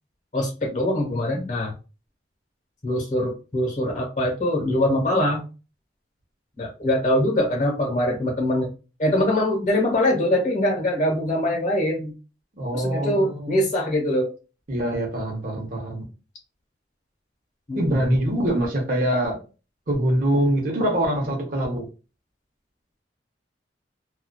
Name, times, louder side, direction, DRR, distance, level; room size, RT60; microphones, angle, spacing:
voice 1, 0.3-1.7 2.8-5.4 6.6-8.7 9.0-12.1 12.7-14.3 17.7-18.1, left 1 dB, 40° left, 1.0 m, -23 dB
voice 2, 12.6-13.7 14.7-16.1 17.8-19.4 19.9-21.9, right 1 dB, 50° right, 0.8 m, -24 dB
2.4 x 2.3 x 2.2 m
head